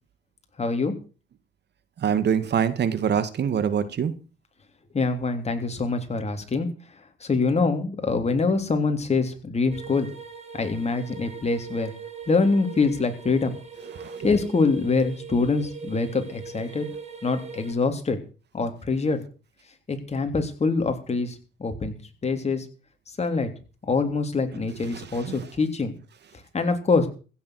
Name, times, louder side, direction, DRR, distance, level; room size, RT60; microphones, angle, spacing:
voice 1, 0.6-0.9 4.9-6.7 7.2-10.1 10.6-11.9 12.3-13.6 14.2-16.9 17.2-18.2 18.5-19.2 19.9-21.3 21.6-21.9 22.2-22.6 23.2-23.5 23.9-25.9 26.5-27.1, left 4 dB, 35° left, 3.3 m, -24 dB
voice 2, 2.0-4.1 14.0-14.2 24.9-25.4, right 8 dB, 60° right, 2.0 m, -25 dB
sound 1, 9.7-17.7, right 6 dB, 35° right, 4.7 m, -41 dB
15.5 x 7.3 x 8.1 m
cardioid pair, 90°, 20 cm